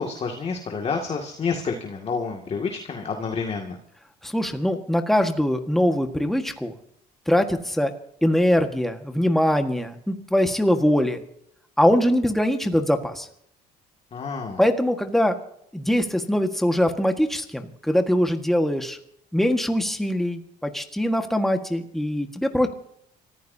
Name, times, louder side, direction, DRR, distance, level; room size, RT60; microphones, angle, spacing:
voice 1, 0.0-3.8 14.1-14.6, left 5 dB, 40° left, 2 dB, 2.4 m, -29 dB
voice 2, 4.2-6.7 7.3-7.9 8.2-11.2 11.8-13.3 14.6-15.4 15.7-19.0 19.3-22.7, equal, ahead, 5 dB, 1.7 m, -22 dB
30.0 x 14.5 x 2.8 m, 0.72 s
cardioid pair, 110°, 17 cm